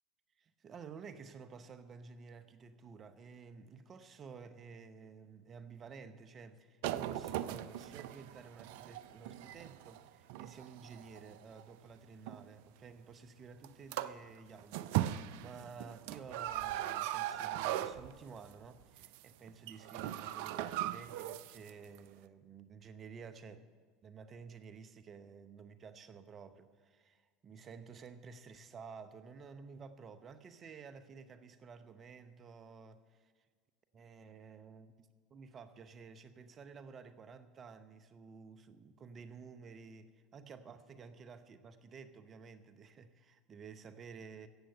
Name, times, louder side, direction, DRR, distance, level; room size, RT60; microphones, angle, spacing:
voice 1, 0.4-23.7 24.0-33.5 33.9-34.9 35.3-44.5, right 5 dB, 35° right, 11 dB, 0.8 m, -52 dB
sound 1, 6.8-11.6 12.3-12.5 13.6-13.7 13.9-14.3 14.6-18.5 18.8-19.2 19.5-21.7 21.9-22.0, right 13 dB, 70° right, 0.4 m, -39 dB
16.0 x 7.7 x 6.9 m, 1.5 s
hypercardioid pair, 80°, 0 cm